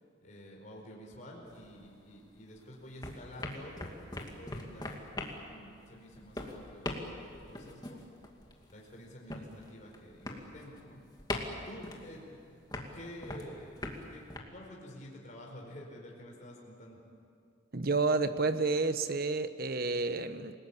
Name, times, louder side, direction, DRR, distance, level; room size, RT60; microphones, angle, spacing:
voice 1, 0.0-8.0 8.7-11.0 11.4-12.5 12.9-17.0, equal, 40° left, -1 dB, 4.9 m, -50 dB
sound 1, 1.5-2.6 2.8-14.4, left 1 dB, 20° left, 2.5 m, -42 dB
voice 2, 17.7-20.5, right 3 dB, 50° right, 10 dB, 1.1 m, -30 dB
29.0 x 19.0 x 8.6 m, 2.4 s
head